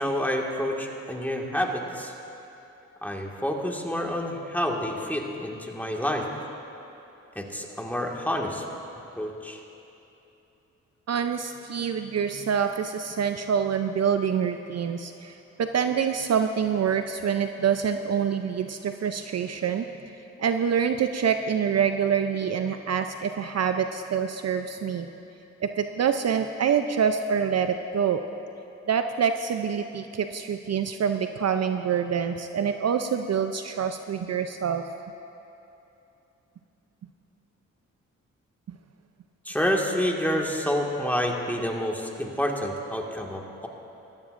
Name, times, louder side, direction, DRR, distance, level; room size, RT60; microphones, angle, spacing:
voice 1, 0.0-2.1 3.0-6.3 7.4-8.6 9.2-9.6 39.5-43.7, equal, 5° left, 0 dB, 1.8 m, -28 dB
voice 2, 11.1-19.8 20.4-25.1 25.6-28.2 28.9-34.8, right 7 dB, 50° right, 8 dB, 0.6 m, -26 dB
18.0 x 14.0 x 2.6 m, 2.9 s
supercardioid pair, 50°, 33 cm